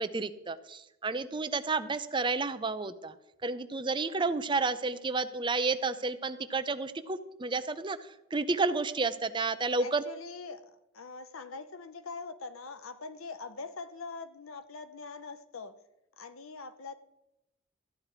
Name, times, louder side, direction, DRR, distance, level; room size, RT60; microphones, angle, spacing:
voice 1, 0.0-3.1 3.4-8.0 8.3-10.0, right 3 dB, 20° right, 10 dB, 0.5 m, -31 dB
voice 2, 9.8-15.7 16.2-16.9, left 4 dB, 75° left, 11 dB, 0.7 m, -43 dB
14.0 x 10.0 x 4.9 m, 0.92 s
head